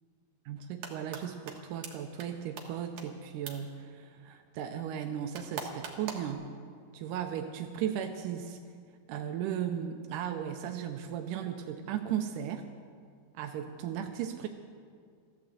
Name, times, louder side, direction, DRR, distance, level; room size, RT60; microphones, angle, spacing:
voice 1, 0.5-6.5 6.9-8.6 9.1-12.6 13.3-14.5, right 9 dB, 80° right, 5 dB, 1.8 m, -36 dB
sound 1, 0.6-1.2 1.5-1.6 1.8-1.9 2.2-2.3 2.6-2.7 3.0-3.1 3.5-3.6 5.3-6.3, right 7 dB, 60° right, 2.5 m, -39 dB
15.0 x 11.5 x 7.7 m, 2.2 s
omnidirectional pair, 4.4 m